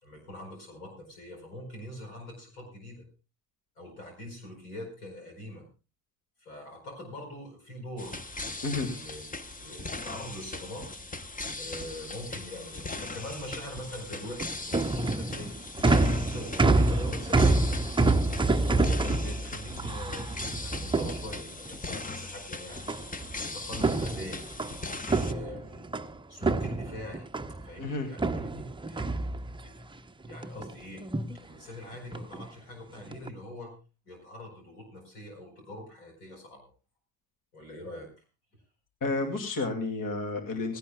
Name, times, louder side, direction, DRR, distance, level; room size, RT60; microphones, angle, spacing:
voice 1, 0.0-3.0 3.8-5.6 6.4-8.2 8.8-9.3 9.6-10.9 11.5-15.6 16.0-17.7 18.7-22.8 23.3-24.5 25.1-25.9 26.3-27.3 27.6-29.3 29.6-29.8 30.2-31.0 31.4-33.8 34.1-36.7 37.5-38.1, left 1 dB, 85° left, 3 dB, 4.8 m, -43 dB
sound 1, 8.0-25.3, left 3 dB, 20° left, 1.1 m, -39 dB
sound 2, 14.2-21.8 22.9-23.4 23.7-26.1 26.4-27.7 28.2-29.8 30.2-30.7 31.0-31.4 32.1-32.5 33.0-33.3, right 2 dB, 10° right, 0.8 m, -27 dB
voice 2, 27.8-28.1 39.0-40.8, left 3 dB, 45° left, 5 dB, 2.5 m, -31 dB
18.0 x 17.0 x 2.3 m, 0.32 s
hypercardioid pair, 50°, 44 cm